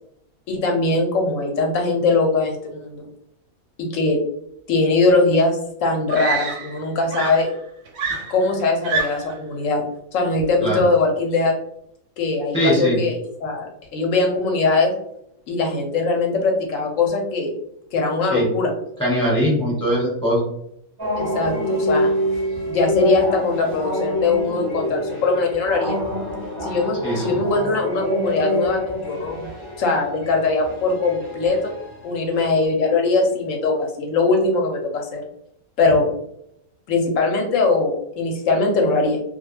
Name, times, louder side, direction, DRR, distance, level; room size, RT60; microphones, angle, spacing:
voice 1, 0.5-3.1 3.8-4.2 4.7-7.5 8.3-9.8 10.1-11.5 12.2-14.9 15.5-17.5 17.9-18.7 21.2-22.1 22.7-26.0 26.6-29.5 29.8-31.7 32.0-35.2 35.8-36.1 36.9-39.2, left 3 dB, 65° left, 2 dB, 0.9 m, -21 dB
Screaming, 5.3-5.4 6.1-6.9 7.1-9.4 10.4-10.7, right 5 dB, 70° right, 0.8 m, -27 dB
voice 2, 12.5-13.0 18.3-18.5 19.0-20.4 27.0-27.4, equal, 5° left, -6 dB, 1.1 m, -20 dB
sound 1, 21.0-32.6, equal, 25° right, 0.5 m, -26 dB
2.3 x 2.1 x 3.1 m, 0.75 s
omnidirectional pair, 1.5 m